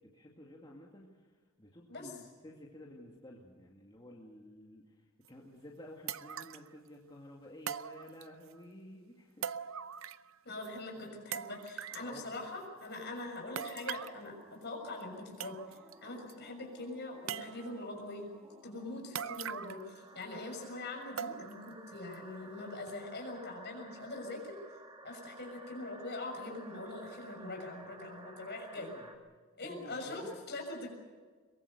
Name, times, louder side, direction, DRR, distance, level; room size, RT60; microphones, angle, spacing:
voice 1, 0.1-1.3 1.6-9.5 10.5-10.7 11.0-11.1 12.0-12.3 27.8-27.9 28.7-29.1 29.6-30.4, left 1 dB, 20° left, -2 dB, 2.3 m, -52 dB
sound 1, 5.3-5.4 6.1-6.7 7.7-8.5 9.4-10.3 10.6-10.7 11.3-12.1 13.6-14.2 15.0-15.1 15.4-15.9 16.3-16.4 17.3-17.9 19.1-19.9 20.2-20.3 21.2-21.7 22.1-22.2 22.9-23.0, right 8 dB, 65° right, 0.6 m, -41 dB
voice 2, 10.4-18.3 18.6-24.5 25.0-28.9 29.6-30.9, left 2 dB, 50° left, 2 dB, 6.4 m, -43 dB
sound 2, 11.5-29.2, right 2 dB, 20° right, 1.9 m, -55 dB
23.0 x 22.0 x 6.7 m, 1.5 s
head